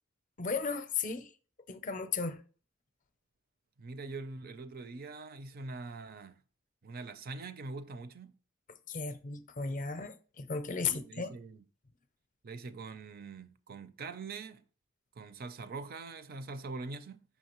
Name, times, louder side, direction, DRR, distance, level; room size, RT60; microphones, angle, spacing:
voice 1, 0.4-1.3 1.7-2.4 8.9-11.3, left 5 dB, 40° left, 0.5 m, -35 dB
voice 2, 3.8-6.4 6.8-8.4 10.8-11.6 12.4-14.6 15.2-17.2, right 3 dB, 50° right, 0.5 m, -43 dB
5.9 x 5.6 x 3.0 m
head